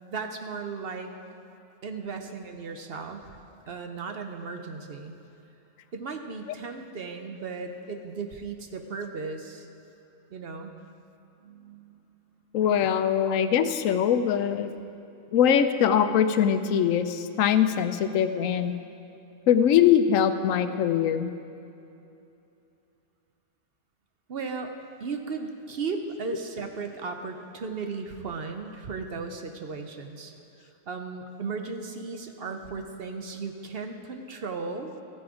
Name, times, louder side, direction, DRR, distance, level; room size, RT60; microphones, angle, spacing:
voice 1, 0.1-1.1 1.8-3.3 3.7-5.1 5.9-9.7 10.3-10.7 11.4-12.1 24.3-24.7 25.0-30.3 30.6-34.9, right 4 dB, 55° right, 5 dB, 0.9 m, -36 dB
voice 2, 12.5-14.7 15.3-18.7 19.5-21.3, left 9 dB, 90° left, 10 dB, 1.0 m, -22 dB
14.5 x 9.4 x 4.9 m, 2.8 s
omnidirectional pair, 1.3 m